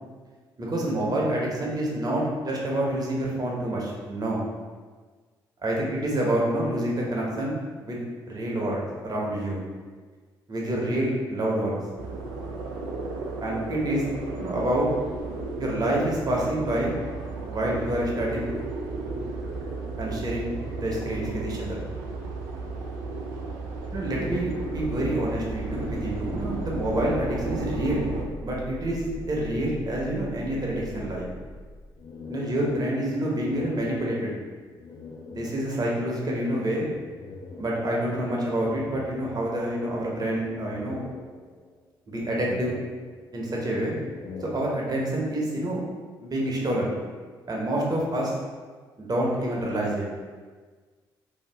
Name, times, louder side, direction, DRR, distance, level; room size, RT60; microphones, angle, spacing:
voice 1, 0.6-4.4 5.6-8.0 8.3-9.6 10.5-11.8 13.4-14.1 14.4-14.9 15.6-16.9 17.5-18.5 20.0-21.7 23.9-28.1 28.4-31.3 32.3-34.3 35.3-36.9 37.6-41.0 42.1-42.8 43.3-43.9 44.4-45.8 46.2-46.9 47.5-48.3 49.0-50.0, right 1 dB, 35° right, -3 dB, 0.9 m, -27 dB
sound 1, 12.0-28.3, right 3 dB, 75° right, 0.4 m, -34 dB
sound 2, 23.7-31.9, equal, 80° left, 1.0 m, -41 dB
sound 3, 25.9-28.7 29.0-30.1 30.5-35.9 36.9-38.2 38.6-39.9 40.3-41.8 42.1-43.5 43.9-45.2, left 3 dB, 40° left, 0.5 m, -44 dB
2.8 x 2.3 x 3.3 m, 1.5 s
hypercardioid pair, 45°, 11 cm